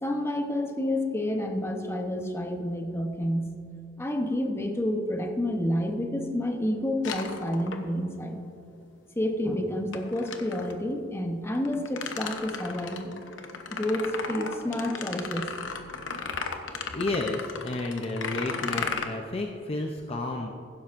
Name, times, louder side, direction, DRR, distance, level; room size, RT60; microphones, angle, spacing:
voice 1, 0.0-3.5 4.0-8.4 9.2-13.1 13.7-15.5, left 1 dB, 15° left, 3 dB, 0.9 m, -29 dB
sound 1, 7.0-8.1 9.9-10.8 11.5-19.0, left 5 dB, 80° left, 0.9 m, -35 dB
voice 2, 16.9-20.5, left 2 dB, 30° left, 2 dB, 0.6 m, -31 dB
15.5 x 12.0 x 2.6 m, 2.6 s
head